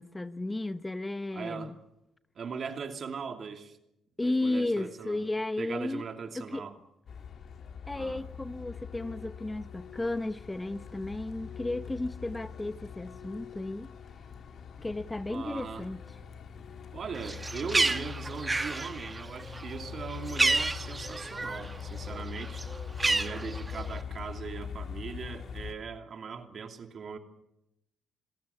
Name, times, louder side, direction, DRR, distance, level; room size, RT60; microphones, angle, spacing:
voice 1, 0.0-1.7 4.2-6.1 6.3-6.6 7.9-13.9 14.8-16.0, left 2 dB, 15° left, 0.8 m, -34 dB
voice 2, 1.3-1.7 2.4-3.8 4.2-5.2 5.6-6.8 7.9-8.2 15.3-15.8 16.9-22.6 23.0-27.2, right 6 dB, 50° right, 2.7 m, -39 dB
Truck, 7.1-25.7, left 7 dB, 60° left, 2.4 m, -42 dB
Bird, 17.1-21.8 22.1-24.0, right 3 dB, 20° right, 1.3 m, -30 dB
27.0 x 17.0 x 8.3 m
cardioid pair, 90°, 0 cm